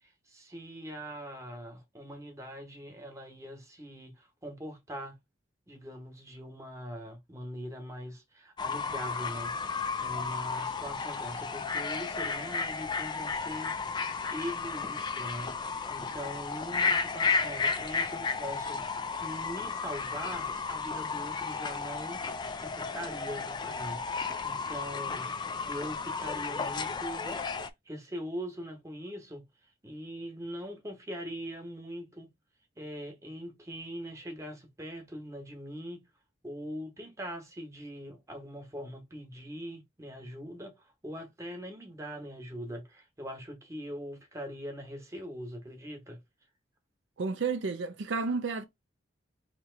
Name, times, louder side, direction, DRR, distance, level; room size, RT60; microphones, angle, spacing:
voice 1, 0.3-5.2 5.7-13.7 14.3-15.6 15.9-22.2 22.6-25.3 25.7-27.4 27.9-29.4 29.8-32.3 32.8-36.0 36.4-40.7 41.0-46.2, equal, 15° right, 1.0 m, -42 dB
Fowl / Bird, 8.6-27.7, left 5 dB, 25° left, 0.3 m, -33 dB
voice 2, 47.2-48.6, right 4 dB, 70° right, 0.5 m, -31 dB
2.9 x 2.8 x 4.4 m
head